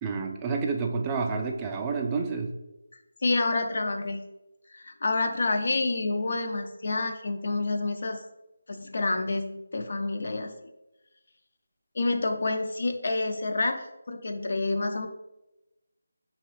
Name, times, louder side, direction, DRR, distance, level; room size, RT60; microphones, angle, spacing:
voice 1, 0.0-2.5, right 4 dB, 15° right, 2 dB, 0.4 m, -29 dB
voice 2, 3.2-4.2 4.7-8.2 8.7-10.5 11.9-13.8 14.1-15.1, left 2 dB, 55° left, 5 dB, 0.5 m, -28 dB
5.3 x 3.0 x 3.1 m, 0.95 s
figure-of-eight pair, 160°, 0 cm